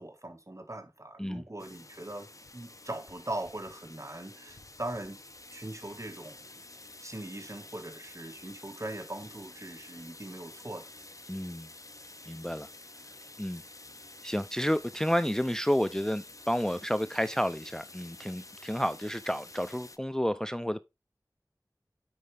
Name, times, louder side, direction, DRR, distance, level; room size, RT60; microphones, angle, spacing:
voice 1, 0.0-5.2 5.5-6.4 7.0-10.9, right 1 dB, 45° right, 1.6 m, -40 dB
sound 1, 1.6-20.0, left 2 dB, 50° left, 0.7 m, -50 dB
voice 2, 11.3-11.7 12.3-12.7 13.4-13.6 14.2-20.8, equal, 10° left, 0.4 m, -30 dB
9.6 x 4.7 x 3.3 m
wide cardioid pair, 40°, 7 cm